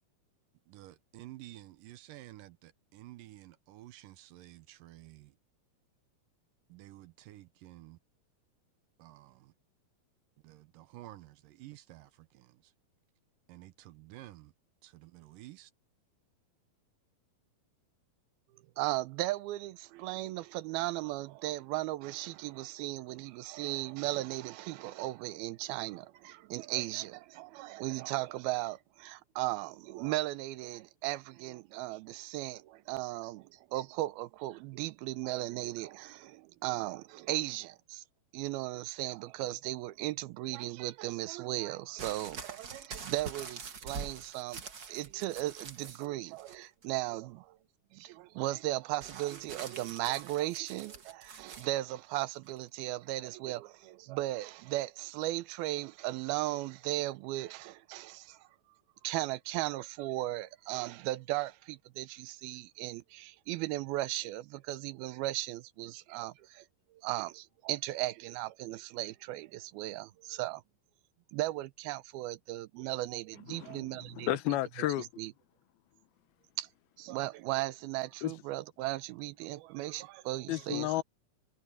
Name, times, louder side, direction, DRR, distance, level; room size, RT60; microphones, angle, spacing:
voice 1, 0.7-5.3 6.7-8.0 9.0-9.5 10.4-12.5 13.5-14.5 14.8-15.7, right 16 dB, 75° right, 2.3 m, -51 dB
voice 2, 18.8-38.0 38.3-47.6 47.9-58.4 59.0-66.7 67.0-70.6 71.3-74.4 75.0-75.3 76.6-76.7 77.0-81.0, right 17 dB, 90° right, 2.6 m, -36 dB
sound 1, 42.0-46.1 46.4-47.0 49.0-51.7 52.6-52.7, right 5 dB, 45° right, 1.2 m, -45 dB
voice 3, 73.5-75.1 78.2-78.3 80.5-81.0, left 15 dB, 85° left, 2.8 m, -32 dB
omnidirectional pair, 4.2 m